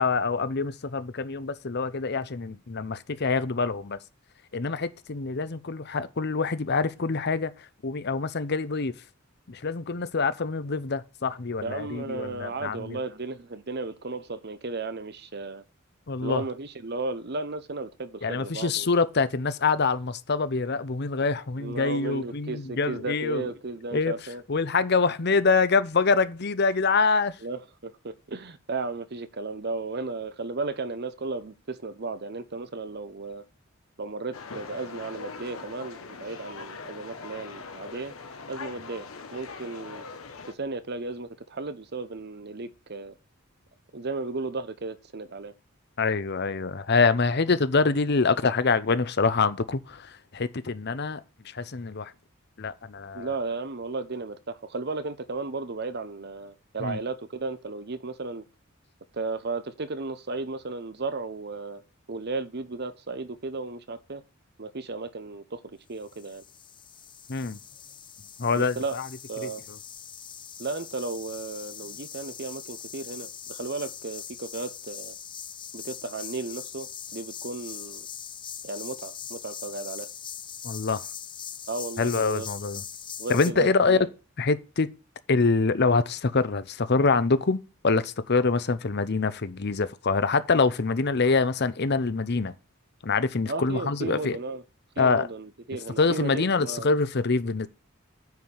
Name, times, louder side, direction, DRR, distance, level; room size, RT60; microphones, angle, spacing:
voice 1, 0.0-4.0 4.5-8.9 9.5-13.0 16.1-16.4 18.2-23.5 23.9-24.1 24.5-27.4 46.0-52.1 52.6-53.3 56.8-57.0 67.3-67.6 68.4-69.1 69.4-69.8 80.6-81.0 82.0-82.8 83.3-84.1 84.4-84.9 85.3-92.5 93.0-94.4 95.0-95.3 96.0-97.7, left 4 dB, 55° left, 0.7 m, -25 dB
voice 2, 11.6-15.6 16.2-18.9 21.6-24.4 27.4-33.4 34.0-38.1 38.5-40.1 40.5-43.1 43.9-45.5 53.1-58.4 59.1-61.8 62.1-64.2 64.6-66.4 68.5-69.0 69.3-69.6 70.6-75.2 75.7-78.1 78.6-80.1 81.7-82.5 83.2-84.1 93.5-94.6 95.0-96.9, right 3 dB, 50° right, 0.9 m, -34 dB
sound 1, 34.3-40.5, left 4 dB, 90° left, 1.3 m, -41 dB
sound 2, 66.0-83.5, left 8 dB, 25° left, 0.6 m, -41 dB
9.4 x 4.9 x 7.1 m
head